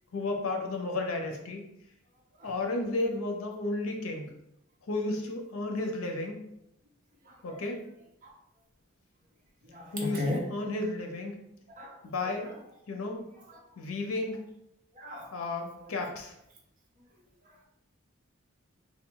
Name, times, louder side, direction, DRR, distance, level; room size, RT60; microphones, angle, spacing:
voice 1, 0.1-1.6 2.4-4.3 4.9-6.4 7.4-7.8 9.9-11.4 12.0-12.5 12.9-13.2 13.8-14.4 15.3-16.3, left 2 dB, 80° left, 3 dB, 0.7 m, -33 dB
voice 2, 7.3-7.6 8.2-8.3 9.6-10.4 11.8-12.0 15.0-15.3, left 1 dB, 40° right, -1 dB, 0.8 m, -35 dB
3.5 x 2.2 x 3.8 m, 0.80 s
head